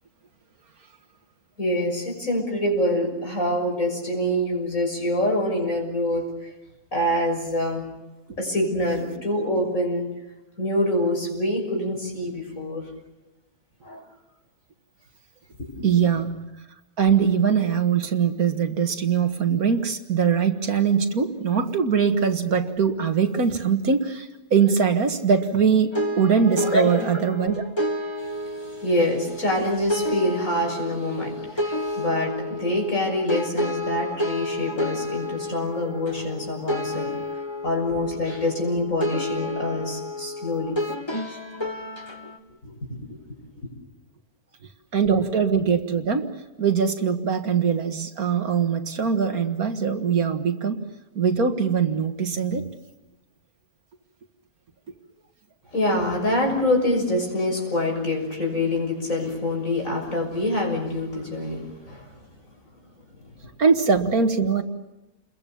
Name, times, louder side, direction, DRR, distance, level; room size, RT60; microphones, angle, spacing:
voice 1, 1.6-6.5 6.9-7.9 8.4-10.1 10.6-12.8 13.8-14.0 15.6-15.9 26.6-26.9 28.3-37.1 37.6-40.7 41.1-41.4 42.6-42.8 55.7-62.1 63.2-63.3, left 1 dB, 60° left, 2 dB, 6.8 m, -25 dB
voice 2, 15.8-16.3 17.0-27.6 44.9-46.3 46.6-50.9 51.2-52.7 63.6-64.6, right 6 dB, 70° right, 7 dB, 2.1 m, -22 dB
sound 1, 25.9-42.4, left 1 dB, 15° left, 2.0 m, -30 dB
30.0 x 22.0 x 7.1 m, 1.0 s
omnidirectional pair, 1.6 m